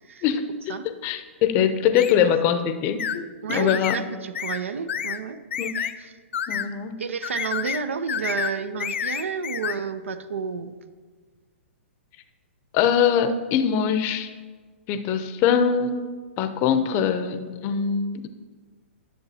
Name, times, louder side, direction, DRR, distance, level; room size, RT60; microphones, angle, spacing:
voice 1, 0.2-0.7 1.0-4.0 5.6-5.9 6.5-7.0 12.7-14.3 14.9-16.0 16.4-18.3, left 8 dB, 35° left, 10 dB, 0.6 m, -23 dB
sound 1, 2.0-2.2 3.0-3.2 3.5-4.0 4.4-4.6 4.9-5.2 5.5-5.9 6.3-6.7 7.2-7.8 8.1-8.5 8.8-9.8, left 8 dB, 75° left, 0.4 m, -29 dB
voice 2, 3.4-5.4 6.0-6.1 7.0-10.7, right 6 dB, 80° right, 11 dB, 0.5 m, -30 dB
11.0 x 6.9 x 2.8 m, 1.5 s
hypercardioid pair, 125°, 7 cm